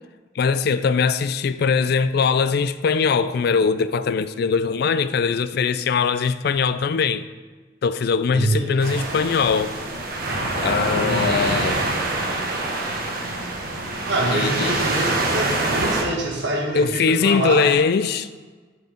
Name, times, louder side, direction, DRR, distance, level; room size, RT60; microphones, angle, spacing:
voice 1, 0.4-7.3 7.8-9.7 10.6-11.8 14.3-14.8 16.7-18.4, left 5 dB, 60° left, 0.4 m, -21 dB
voice 2, 8.3-8.7 11.0-11.5 14.0-17.6, right 2 dB, 75° right, 1.6 m, -25 dB
sound 1, 8.8-16.0, right 2 dB, 55° right, 1.1 m, -25 dB
7.9 x 4.6 x 5.1 m
head